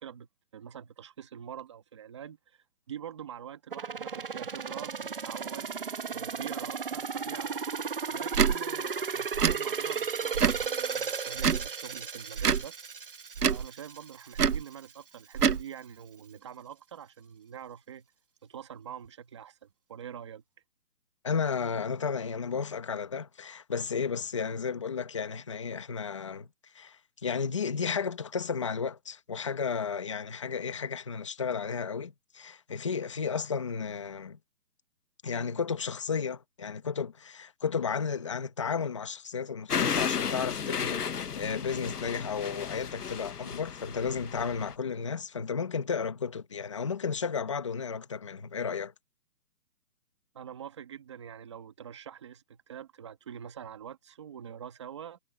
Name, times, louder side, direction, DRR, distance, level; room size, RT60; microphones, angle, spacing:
voice 1, 0.0-7.6 8.1-12.7 13.4-18.1 18.4-20.4 50.3-55.2, right 9 dB, 15° right, 1.7 m, -45 dB
sound 1, 3.7-14.4 14.8-14.9, right 6 dB, 35° right, 1.2 m, -35 dB
Tick / Tick-tock, 8.3-8.5 9.3-9.6 10.3-10.7 11.4-11.7 12.4-12.7 13.4-13.7 14.4-14.6 15.3-15.6, right 7 dB, 65° right, 1.1 m, -25 dB
voice 2, 21.2-26.5 26.7-34.4 35.2-48.9, left 6 dB, 20° left, 1.2 m, -33 dB
sound 2, 39.7-44.7, left 7 dB, 65° left, 1.3 m, -33 dB
hypercardioid pair, 175°, 50 cm